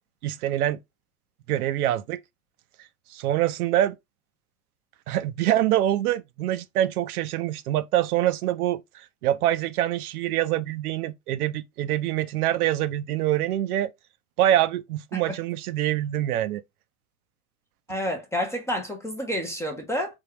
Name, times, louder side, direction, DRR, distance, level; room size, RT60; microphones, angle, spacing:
voice 1, 0.2-0.8 1.5-2.2 3.1-3.9 5.1-13.9 14.4-16.6, right 13 dB, 65° right, 0.5 m, -25 dB
voice 2, 17.9-20.2, equal, 5° left, 0.4 m, -29 dB
3.6 x 2.3 x 2.9 m
hypercardioid pair, 100°, 49 cm